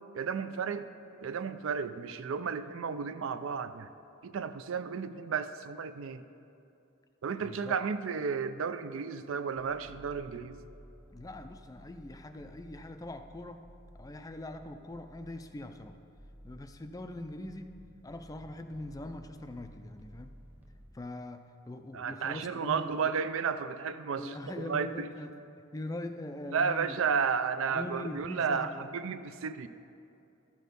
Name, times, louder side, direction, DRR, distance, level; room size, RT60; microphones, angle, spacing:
voice 1, 0.1-0.9 1.2-3.9 4.2-6.2 7.2-10.6 21.9-25.1 26.5-29.7, right 6 dB, 65° right, 12 dB, 0.4 m, -33 dB
voice 2, 7.4-7.7 11.1-13.7 14.0-16.0 16.4-17.7 18.0-20.3 20.9-22.9 24.2-25.3 25.7-27.2 27.7-28.9, left 1 dB, 15° left, 7 dB, 0.4 m, -42 dB
sound 1, 9.5-20.9, equal, 5° right, 0.8 m, -54 dB
13.5 x 6.4 x 5.2 m, 2.7 s
head